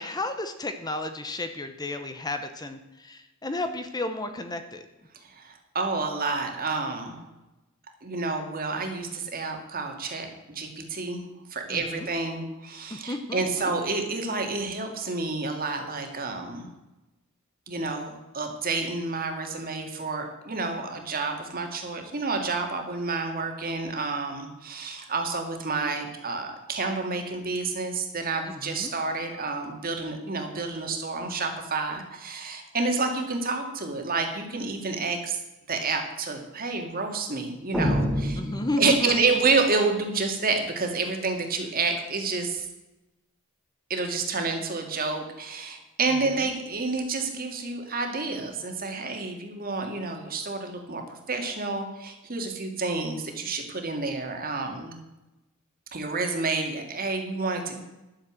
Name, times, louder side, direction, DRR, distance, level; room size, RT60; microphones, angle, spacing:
voice 1, 0.0-4.8 11.7-12.1 13.1-13.4 28.5-28.9 38.4-39.2, left 2 dB, 20° left, 8 dB, 0.8 m, -32 dB
voice 2, 5.3-7.2 8.0-11.2 11.5-16.7 17.7-35.4 35.7-38.4 38.8-42.7 43.9-55.0 55.9-57.8, right 3 dB, 45° right, 4 dB, 2.1 m, -29 dB
sound 1, 37.7-39.3, equal, ahead, 1.5 m, -27 dB
12.0 x 7.2 x 7.7 m, 1.0 s
head